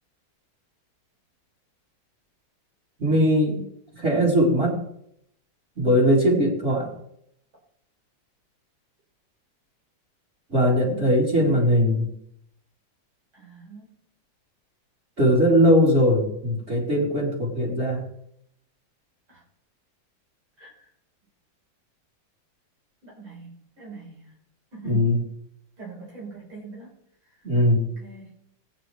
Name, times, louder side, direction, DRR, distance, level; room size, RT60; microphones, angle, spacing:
voice 1, 3.0-3.6 4.0-4.8 5.8-6.9 10.5-12.1 15.2-18.0 24.8-25.2 27.4-27.9, equal, 30° right, -4 dB, 3.6 m, -20 dB
voice 2, 13.3-14.0 19.3-19.4 20.6-20.8 23.0-24.3 24.7-25.1 25.8-26.9 28.0-28.4, right 4 dB, 85° right, -4 dB, 4.9 m, -43 dB
20.0 x 9.2 x 3.2 m, 0.74 s
omnidirectional pair, 2.2 m